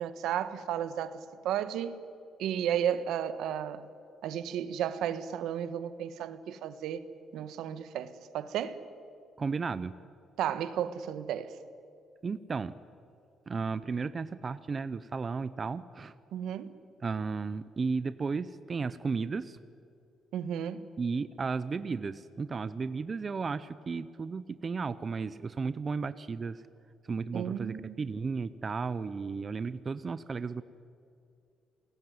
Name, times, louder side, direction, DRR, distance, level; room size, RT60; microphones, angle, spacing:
voice 1, 0.0-2.0 2.4-3.8 4.2-7.0 7.3-8.8 10.4-11.6 16.3-16.7 20.3-20.9 27.3-28.0, right 9 dB, 85° right, 12 dB, 1.4 m, -33 dB
voice 2, 9.4-9.9 12.2-12.7 13.5-16.1 17.0-19.6 21.0-26.6 27.1-30.6, right 4 dB, 25° right, 14 dB, 0.6 m, -34 dB
28.5 x 19.0 x 9.5 m, 2.5 s
cardioid pair, 160°, 0 cm